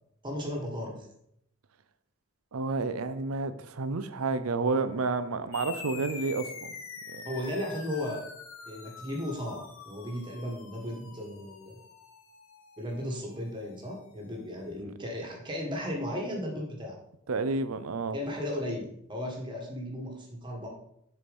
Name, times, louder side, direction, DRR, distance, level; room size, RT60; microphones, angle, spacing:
voice 1, 0.2-1.1 7.3-8.2 8.7-11.8 12.8-17.0 18.1-20.7, left 1 dB, 20° right, -1 dB, 1.7 m, -35 dB
voice 2, 2.5-6.7 7.1-7.2 17.3-18.2, right 3 dB, 90° right, 12 dB, 0.6 m, -30 dB
sound 1, 5.5-14.4, left 5 dB, 75° left, 0.9 m, -46 dB
6.9 x 4.7 x 5.4 m, 0.74 s
head